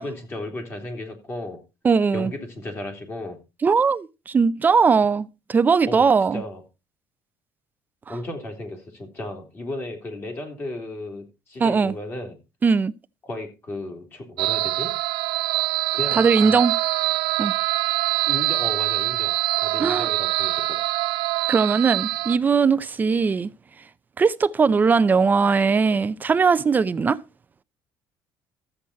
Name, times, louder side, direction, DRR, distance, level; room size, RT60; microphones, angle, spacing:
voice 1, 0.0-1.6 2.1-3.4 5.9-6.0 6.3-6.6 8.1-12.4 13.2-14.9 15.9-16.8 18.3-20.8, left 1 dB, 30° left, 3.0 m, -34 dB
voice 2, 1.8-2.3 3.6-6.4 11.6-11.9 12.6-12.9 16.2-16.7 17.4-17.5 19.8-20.1 21.5-23.5 24.2-27.2, right 5 dB, 20° right, 0.5 m, -19 dB
sound 1, 14.4-22.4, right 19 dB, 80° right, 0.5 m, -24 dB
13.0 x 7.8 x 4.3 m
cardioid pair, 150°, 8 cm